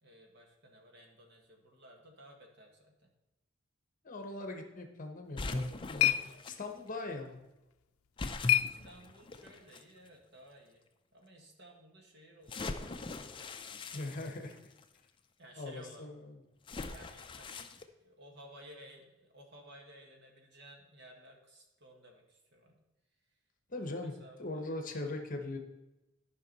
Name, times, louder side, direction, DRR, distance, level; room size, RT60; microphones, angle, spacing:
voice 1, 0.0-3.1 6.1-6.5 8.4-10.9 11.1-13.5 15.4-16.1 16.9-17.7 18.0-22.8 23.1-23.4 23.9-24.8, right 1 dB, 55° right, 2 dB, 1.7 m, -56 dB
voice 2, 4.0-6.2 6.5-7.4 13.9-14.6 15.6-16.3 23.7-24.1 24.4-25.6, left 2 dB, 40° left, 4 dB, 1.0 m, -40 dB
sound 1, 5.2-9.5, left 13 dB, 85° left, 0.5 m, -34 dB
sound 2, 5.4-6.5 8.2-9.8 10.6-10.7 12.5-14.8 16.7-17.8, left 3 dB, 25° left, 0.5 m, -41 dB
13.5 x 5.4 x 4.0 m, 0.98 s
head